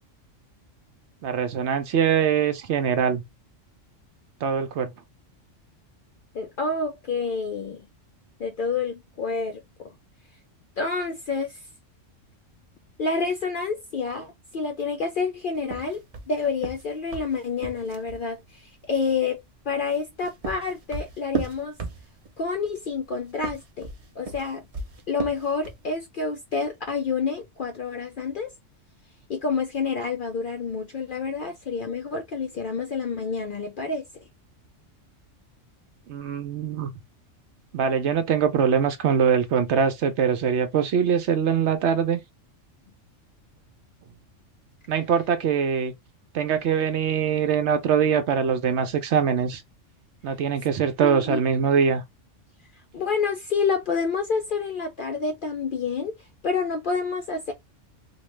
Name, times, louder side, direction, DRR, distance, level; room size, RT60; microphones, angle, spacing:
voice 1, 1.2-3.2 4.4-4.9 36.1-36.9 37.7-42.2 44.9-45.9 46.3-49.6 50.2-52.0, right 7 dB, 65° right, 0.9 m, -23 dB
voice 2, 6.3-7.9 8.4-9.9 10.8-11.7 13.0-21.8 22.4-23.9 24.2-24.7 25.1-28.5 29.3-34.1 51.0-51.4 52.7-57.5, left 4 dB, 65° left, 0.5 m, -28 dB
sound 1, 15.6-18.3 20.0-22.4 23.3-25.9, right 4 dB, 40° right, 0.5 m, -34 dB
3.0 x 2.2 x 3.1 m
omnidirectional pair, 1.3 m